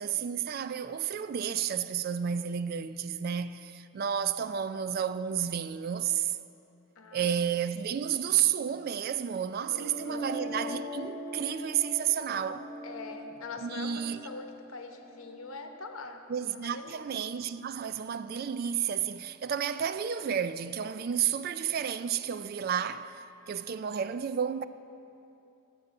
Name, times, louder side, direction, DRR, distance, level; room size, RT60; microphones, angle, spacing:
voice 1, 0.0-6.4 7.1-12.7 13.6-14.2 16.3-24.6, right 8 dB, 45° right, 0.3 m, -31 dB
voice 2, 7.0-7.3 7.9-8.0 9.7-10.3 12.8-17.0, left 3 dB, 80° left, 1.0 m, -43 dB
sound 1, 9.6-15.6, equal, 55° left, 1.3 m, -41 dB
12.5 x 7.1 x 6.5 m
head